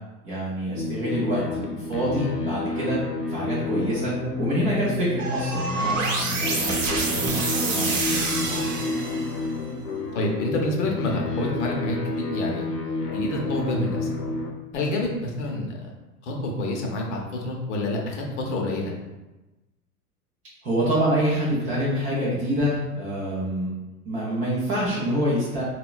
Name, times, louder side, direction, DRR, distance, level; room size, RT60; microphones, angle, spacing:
voice 1, 0.2-3.0 3.3-7.4 7.7-8.6 20.6-23.7 24.0-25.6, equal, 15° right, -8 dB, 0.4 m, -26 dB
sound 1, 0.7-14.5, left 2 dB, 85° left, 0.6 m, -30 dB
sound 2, 5.2-9.5, right 3 dB, 55° right, 0.8 m, -27 dB
voice 2, 10.1-12.7 13.1-14.1 14.7-15.9 16.2-18.9, left 1 dB, 50° left, 0 dB, 0.7 m, -28 dB
3.6 x 2.1 x 2.3 m, 1.1 s
figure-of-eight pair, 95°, 46 cm